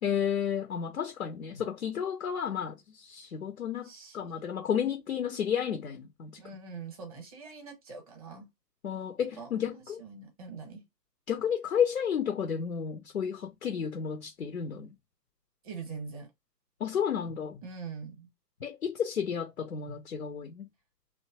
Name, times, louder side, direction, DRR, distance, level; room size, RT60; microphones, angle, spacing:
voice 1, 0.0-6.4 8.8-10.0 11.3-14.9 16.8-17.6 18.6-20.7, left 8 dB, 55° left, 0.7 m, -32 dB
voice 2, 3.8-4.4 6.4-8.5 9.4-10.8 15.6-16.3 17.6-18.3, right 5 dB, 20° right, 1.0 m, -43 dB
2.8 x 2.1 x 2.8 m
figure-of-eight pair, 140°, 50 cm